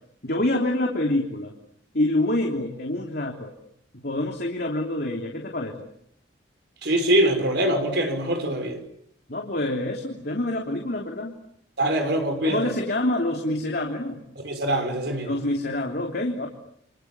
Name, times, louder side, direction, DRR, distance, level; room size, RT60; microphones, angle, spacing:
voice 1, 0.2-1.5 1.9-3.5 3.9-5.9 9.3-11.3 12.4-14.2 15.2-16.5, left 1 dB, 55° left, 3.3 m, -26 dB
voice 2, 6.8-8.8 11.8-12.7 14.4-15.4, right 1 dB, 60° right, 5.9 m, -23 dB
30.0 x 27.0 x 7.2 m
head